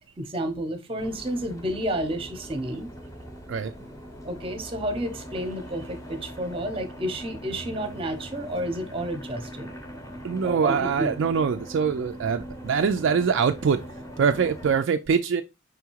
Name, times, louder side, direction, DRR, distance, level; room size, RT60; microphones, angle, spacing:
voice 1, 0.2-2.9 4.2-9.7 10.4-11.1, right 1 dB, 25° right, 0.8 m, -31 dB
sound 1, 1.0-14.8, equal, 15° left, 0.9 m, -41 dB
voice 2, 10.2-13.8 14.2-15.4, right 6 dB, 60° right, 0.3 m, -23 dB
4.9 x 3.5 x 3.0 m
head